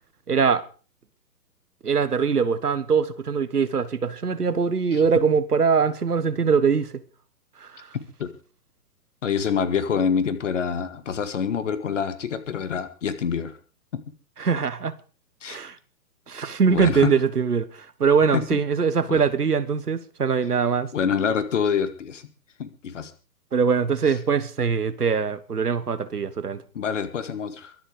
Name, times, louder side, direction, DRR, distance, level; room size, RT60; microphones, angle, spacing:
voice 1, 0.3-0.6 1.8-6.9 7.6-7.9 14.4-14.9 15.5-15.7 16.3-17.7 18.0-20.9 23.5-26.6, right 6 dB, 70° right, 1.5 m, -22 dB
voice 2, 9.2-13.6 15.4-15.6 16.7-17.1 18.3-18.6 19.1-19.2 20.9-22.2 22.6-23.1 26.7-27.8, left 7 dB, 50° left, 2.0 m, -26 dB
23.0 x 7.9 x 5.0 m
figure-of-eight pair, 120°, 48 cm